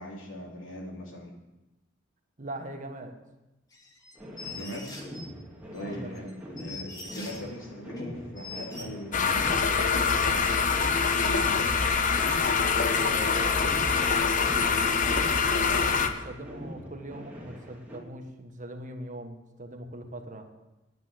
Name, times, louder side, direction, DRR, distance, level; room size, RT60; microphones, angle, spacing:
voice 1, 0.0-1.3 4.5-5.0 5.7-10.7 10.9-11.5, left 1 dB, 85° left, 0 dB, 3.0 m, -40 dB
voice 2, 2.4-3.1 5.8-6.3 12.9-20.5, right 1 dB, 40° right, 5 dB, 1.4 m, -41 dB
sound 1, 3.7-5.3 5.7-7.5 8.0-8.1 8.4-8.8, left 3 dB, 20° left, 1.8 m, -43 dB
sound 2, 4.1-18.0, equal, 10° right, 2.3 m, -43 dB
sound 3, 9.1-16.1, left 5 dB, 40° left, 0.9 m, -24 dB
10.0 x 9.5 x 7.8 m, 0.98 s
head